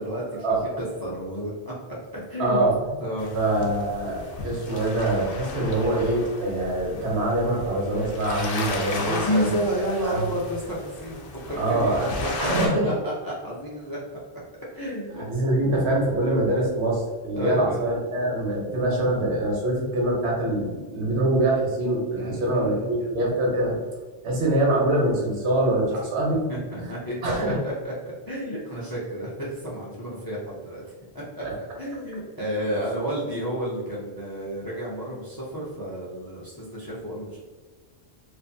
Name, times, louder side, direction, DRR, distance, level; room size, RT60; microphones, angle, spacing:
voice 1, 0.0-0.5 0.8-1.7 2.3-2.7 3.0-3.3 9.0-14.2 14.7-15.3 17.3-17.8 22.1-23.1 25.9-26.0 26.5-27.3 27.6-27.9 28.3-30.8 31.1-31.4 31.8-37.4, equal, 35° left, -6 dB, 0.3 m, -31 dB
voice 2, 2.4-2.9 3.3-10.2 11.6-12.1 12.4-12.9 15.2-23.8 24.2-26.5 26.8-26.9 27.2-27.6 31.4-31.5, right 1 dB, 85° right, -2 dB, 1.1 m, -24 dB
sound 1, 3.2-12.7, left 3 dB, 65° left, 0.7 m, -35 dB
2.5 x 2.4 x 2.6 m, 1.4 s
omnidirectional pair, 1.1 m